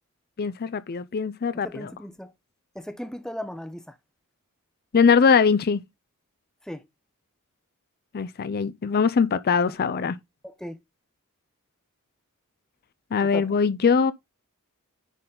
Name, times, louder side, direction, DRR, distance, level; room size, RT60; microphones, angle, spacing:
voice 1, 0.4-1.9 4.9-5.8 8.1-10.2 13.1-14.1, left 5 dB, 45° left, 0.4 m, -21 dB
voice 2, 1.5-2.3 2.7-3.9 6.7-6.8 9.7-9.8 10.4-10.8 13.2-13.5, equal, 5° left, 0.7 m, -37 dB
9.9 x 4.0 x 3.8 m
head